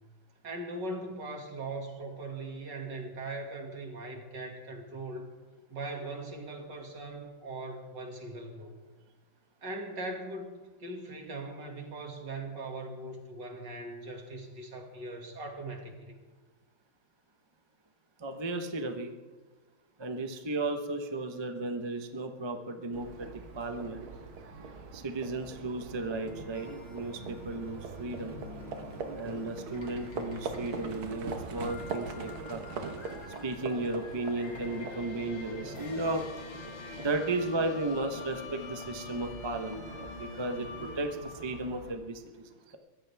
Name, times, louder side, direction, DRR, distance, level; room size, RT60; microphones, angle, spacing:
voice 1, 0.4-5.3 5.7-8.7 9.6-16.2, right 2 dB, 55° right, 2 dB, 2.8 m, -40 dB
voice 2, 18.2-19.1 20.0-23.3 23.5-24.1 24.9-28.3 29.1-32.6 33.4-36.2 37.0-42.8, right 2 dB, 30° right, 5 dB, 0.5 m, -34 dB
Livestock farm animals working animals, 22.9-41.9, right 4 dB, 75° right, 2.2 m, -43 dB
sound 1, 26.1-41.5, left 4 dB, 60° left, 2.5 m, -47 dB
22.5 x 15.5 x 3.5 m, 1.2 s
omnidirectional pair, 2.3 m